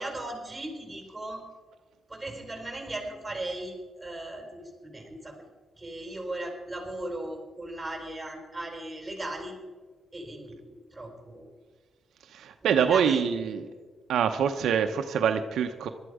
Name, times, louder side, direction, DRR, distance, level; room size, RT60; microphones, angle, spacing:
voice 1, 0.0-1.5 2.1-5.4 5.8-9.6 10.1-11.5 12.6-13.3, right 1 dB, 10° right, 2 dB, 4.4 m, -37 dB
voice 2, 12.3-13.6 14.1-15.9, right 7 dB, 85° right, 6 dB, 0.8 m, -25 dB
19.0 x 12.5 x 5.0 m, 1.4 s
cardioid pair, 110°, 0 cm